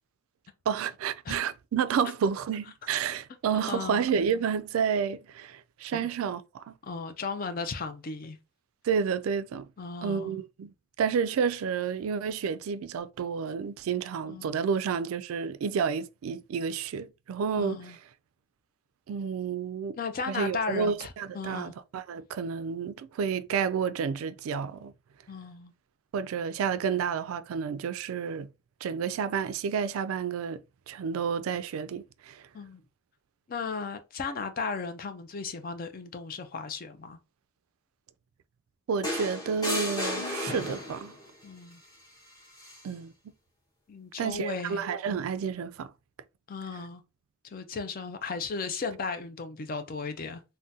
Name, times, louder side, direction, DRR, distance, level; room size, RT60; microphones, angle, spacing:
voice 1, 0.7-6.8 8.8-9.7 10.0-10.7 11.0-17.8 19.1-20.0 20.3-24.9 26.1-28.5 28.8-30.6 30.9-32.4 38.9-41.1 42.8-43.1 44.2-45.9, right 6 dB, 90° right, 0.3 m, -30 dB
voice 2, 3.7-4.0 5.9-6.0 6.8-8.4 9.8-10.4 14.3-14.6 17.6-18.0 20.0-21.7 25.3-25.7 32.5-32.8 33.5-37.2 41.4-41.8 43.9-44.9 46.5-47.0 47.5-50.4, left 4 dB, 45° left, 0.5 m, -35 dB
sound 1, 39.0-41.2 42.6-42.8, left 1 dB, 20° left, 1.2 m, -33 dB
3.6 x 2.1 x 2.7 m
head